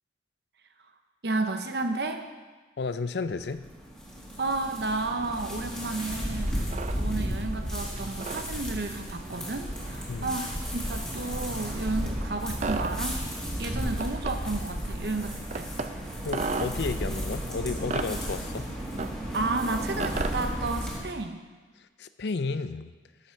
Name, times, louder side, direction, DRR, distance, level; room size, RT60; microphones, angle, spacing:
voice 1, 1.2-2.3 4.4-6.6 6.9-13.2 13.6-15.7 19.3-21.4, right 3 dB, 65° right, 6 dB, 0.9 m, -32 dB
voice 2, 2.8-3.6 10.1-10.4 16.2-18.7 22.0-22.9, left 4 dB, 70° left, 12 dB, 0.5 m, -32 dB
sound 1, 3.3-21.0, equal, 5° left, 2.1 m, -34 dB
sound 2, 5.6-20.6, right 3 dB, 40° right, 0.5 m, -38 dB
11.5 x 7.4 x 4.6 m, 1.3 s
head